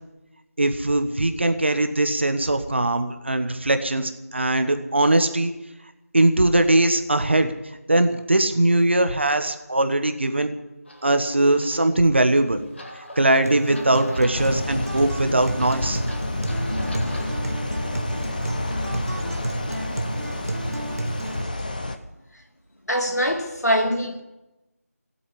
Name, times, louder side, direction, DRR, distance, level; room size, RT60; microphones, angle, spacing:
voice 1, 0.6-5.5 6.1-7.5 7.9-10.5 11.0-12.6 13.0-16.0 19.0-19.3, right 1 dB, 45° right, 1.3 m, -21 dB
sound 1, 10.8-17.7, left 1 dB, 45° left, 2.6 m, -43 dB
Acoustic guitar, 13.4-21.4, right 2 dB, 70° right, 1.3 m, -31 dB
sound 2, 14.3-22.0, left 2 dB, 30° left, 0.9 m, -29 dB
voice 2, 22.9-24.2, equal, 80° left, 2.6 m, -23 dB
16.0 x 8.4 x 9.9 m
figure-of-eight pair, 170°, 9 cm